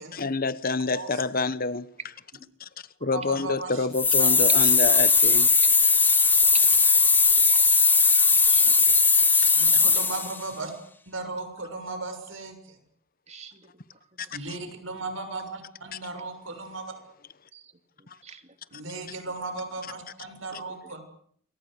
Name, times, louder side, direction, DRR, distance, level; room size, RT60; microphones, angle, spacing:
voice 1, 0.1-1.9 2.6-2.7 3.0-5.5 9.4-9.5 14.2-14.3 18.1-18.2, left 3 dB, 45° left, 1.1 m, -28 dB
voice 2, 3.1-3.9 4.2-4.3 9.5-10.7 11.1-12.8 14.3-16.9 18.7-21.0, right 3 dB, 80° right, 6.9 m, -36 dB
sound 1, 3.9-10.4, left 4 dB, 10° left, 1.5 m, -19 dB
voice 3, 8.3-9.0 9.5-9.8 13.3-13.7 14.2-14.5 17.5-17.7 18.2-18.5 20.5-20.6, right 6 dB, 35° right, 2.5 m, -48 dB
27.5 x 24.0 x 6.7 m
head